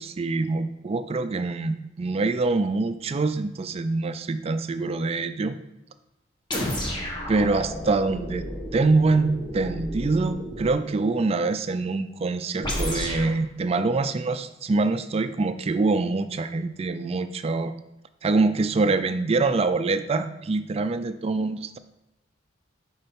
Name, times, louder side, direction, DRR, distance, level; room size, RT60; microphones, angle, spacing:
voice 1, 0.0-5.6 7.3-8.5 8.7-17.7 18.2-21.8, right 3 dB, 35° right, 11 dB, 0.3 m, -25 dB
sound 1, 6.5-10.8 12.6-13.3, equal, 25° left, 1.6 m, -32 dB
6.6 x 5.5 x 4.3 m, 0.92 s
head